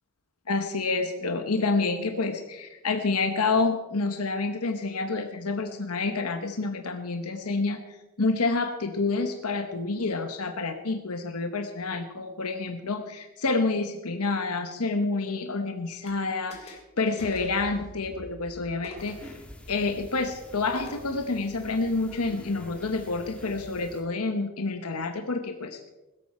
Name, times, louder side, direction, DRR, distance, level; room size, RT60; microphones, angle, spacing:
voice 1, 0.5-7.8 8.2-19.3 19.7-25.9, left 3 dB, 90° left, 6 dB, 1.1 m, -28 dB
sound 1, 16.0-16.2 16.5-16.9 17.2-17.6 18.8-19.3 20.7-21.2, left 1 dB, 30° left, 2.8 m, -45 dB
sound 2, 17.2-19.5, equal, 20° right, 3.2 m, -46 dB
sound 3, 19.0-24.0, equal, 5° left, 1.7 m, -47 dB
16.5 x 13.0 x 4.4 m, 1.1 s
head